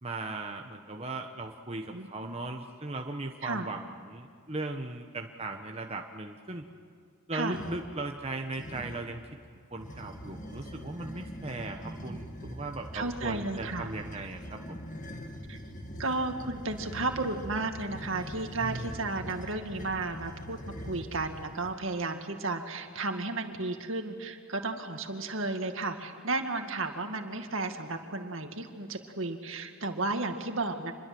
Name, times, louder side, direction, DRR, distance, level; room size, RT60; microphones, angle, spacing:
voice 1, 0.0-6.7 7.3-9.4 9.7-14.8 18.6-19.1, right 2 dB, 30° right, 3 dB, 1.2 m, -38 dB
voice 2, 1.9-2.3 3.4-3.7 7.3-7.6 12.1-12.2 12.9-13.9 15.5-15.6 16.0-30.9, right 3 dB, 65° right, 5 dB, 2.2 m, -33 dB
sound 1, 7.4-7.9 8.5-9.2 9.7-21.8, equal, 35° left, 2.2 m, -43 dB
27.0 x 22.0 x 7.8 m, 2.2 s
head